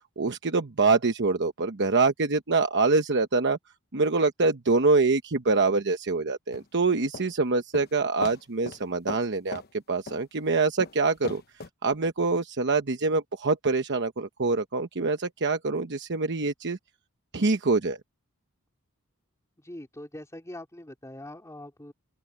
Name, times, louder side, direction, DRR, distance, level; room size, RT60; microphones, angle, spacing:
voice 1, 0.2-3.6 3.9-9.6 9.9-11.4 11.8-16.8 17.3-18.0, right 3 dB, 55° right, 1.0 m, -25 dB
sound 1, 6.5-7.3 7.7-7.9 8.2-8.4 8.7-8.8 9.1-9.3 9.5-9.7 10.1-10.2 10.8-11.7, left 4 dB, 45° left, 1.0 m, -38 dB
voice 2, 19.6-21.9, left 1 dB, 15° left, 3.3 m, -42 dB
open air
head